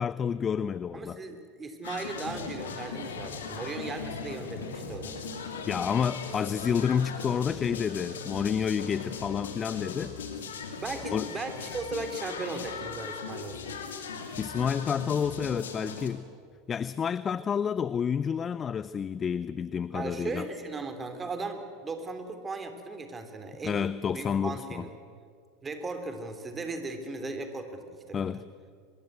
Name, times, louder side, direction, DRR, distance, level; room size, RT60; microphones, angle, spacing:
voice 1, 0.0-1.2 5.7-10.2 11.1-11.3 14.4-16.3 16.7-20.4 23.6-24.8 28.1-28.4, left 7 dB, 30° left, 15 dB, 0.6 m, -29 dB
voice 2, 0.9-5.2 10.8-13.7 19.9-24.9 25.6-28.4, right 3 dB, 20° right, 7 dB, 3.3 m, -37 dB
sound 1, 1.8-16.1, left 5 dB, 75° left, 2.8 m, -39 dB
24.0 x 22.0 x 8.0 m, 2.3 s
figure-of-eight pair, 85°, 0 cm